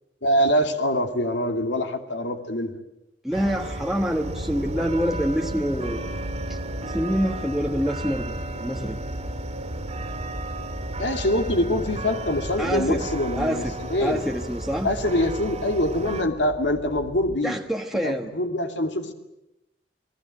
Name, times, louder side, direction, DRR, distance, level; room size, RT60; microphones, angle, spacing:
voice 1, 0.2-2.8 11.0-14.2 14.8-17.6 18.0-19.1, left 1 dB, 70° left, 6 dB, 2.6 m, -24 dB
voice 2, 3.2-6.0 6.5-9.0 12.6-13.1 13.3-14.9 17.4-18.3, equal, ahead, 2 dB, 1.3 m, -26 dB
sound 1, 3.3-16.2, right 1 dB, 40° right, 2.4 m, -34 dB
sound 2, 4.2-17.4, right 1 dB, 80° right, 3.4 m, -37 dB
29.0 x 20.0 x 9.0 m, 0.90 s
head